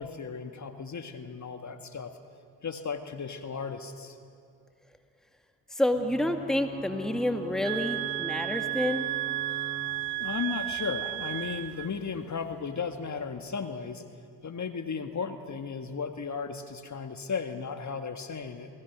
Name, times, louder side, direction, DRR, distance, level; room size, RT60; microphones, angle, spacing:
voice 1, 0.0-2.2 2.6-4.2 10.2-14.0 14.4-18.7, left 5 dB, 35° left, 6 dB, 1.8 m, -35 dB
voice 2, 5.7-9.1, left 1 dB, ahead, 6 dB, 1.9 m, -28 dB
Ocean / Boat Water vehicle / Alarm, 5.9-13.4, right 2 dB, 25° right, 4.8 m, -44 dB
sound 1, 7.6-11.9, right 19 dB, 80° right, 0.6 m, -33 dB
28.5 x 19.0 x 6.1 m, 2.3 s
hypercardioid pair, 50°, 46 cm